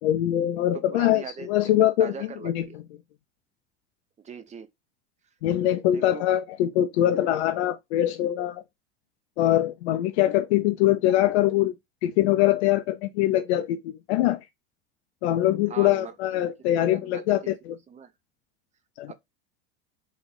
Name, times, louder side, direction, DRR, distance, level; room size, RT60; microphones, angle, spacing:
voice 1, 0.0-2.1 2.4-2.6 5.4-8.6 9.4-11.7 12.0-14.4 15.2-17.8 19.0-19.1, left 13 dB, 75° left, 0.5 m, -23 dB
voice 2, 0.6-1.7 2.0-2.8 4.2-4.7 5.9-6.2 15.7-16.1 16.8-17.5 17.9-18.1 19.1-19.2, right 6 dB, 20° right, 0.6 m, -40 dB
3.0 x 2.4 x 4.0 m
hypercardioid pair, 95°, 34 cm